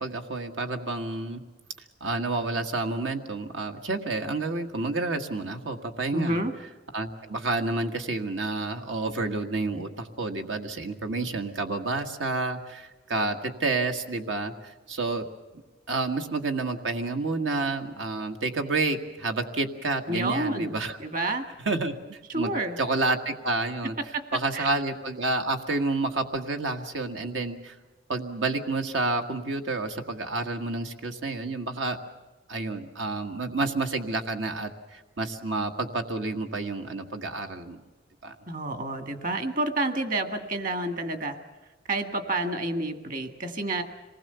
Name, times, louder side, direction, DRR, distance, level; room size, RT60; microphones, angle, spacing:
voice 1, 0.0-1.4 2.0-6.4 6.9-15.3 15.9-21.0 21.6-22.5 22.8-23.9 24.3-27.7 28.1-32.0 32.5-37.8 38.2-38.3, right 3 dB, 85° right, 4 dB, 1.7 m, -29 dB
voice 2, 6.1-6.5 20.1-21.5 22.3-22.8 24.1-24.2 24.5-24.7 38.5-41.4 41.9-43.8, right 2 dB, 45° right, 7 dB, 1.9 m, -29 dB
26.5 x 20.0 x 6.9 m, 1.2 s
head